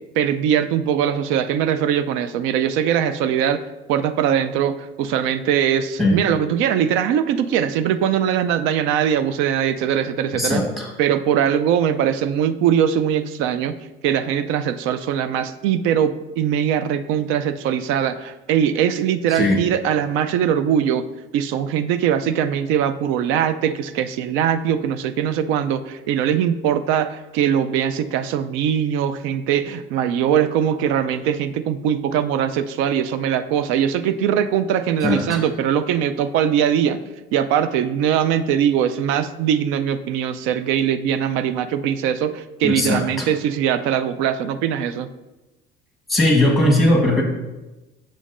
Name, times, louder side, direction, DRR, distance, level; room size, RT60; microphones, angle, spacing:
voice 1, 0.2-3.6 3.9-10.6 11.0-13.8 14.0-21.1 21.3-37.0 37.3-45.1, right 9 dB, 90° right, 12 dB, 0.4 m, -21 dB
voice 2, 10.3-10.9 19.3-19.6 35.0-35.4 42.6-43.3 46.1-47.2, left 1 dB, ahead, -1 dB, 1.2 m, -19 dB
7.4 x 7.0 x 2.5 m, 1.1 s
cardioid pair, 155°, 20 cm